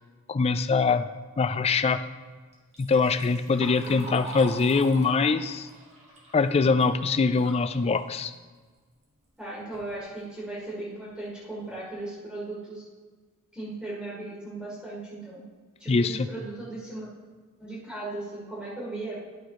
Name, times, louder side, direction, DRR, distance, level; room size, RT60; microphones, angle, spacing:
voice 1, 0.3-1.1 1.4-2.0 2.8-5.7 6.3-8.3 15.9-16.3, left 4 dB, 30° left, 12 dB, 0.3 m, -23 dB
Liquid, 2.5-7.6 8.0-8.1 9.0-9.1 9.5-9.9 10.5-10.6 11.1-11.2 11.6-11.9, right 1 dB, 30° right, 1.8 m, -43 dB
voice 2, 3.8-4.1 9.4-12.8 13.5-15.4 15.8-17.1 17.6-19.2, right 2 dB, 5° right, -7 dB, 2.0 m, -37 dB
11.5 x 3.9 x 4.9 m, 1.4 s
head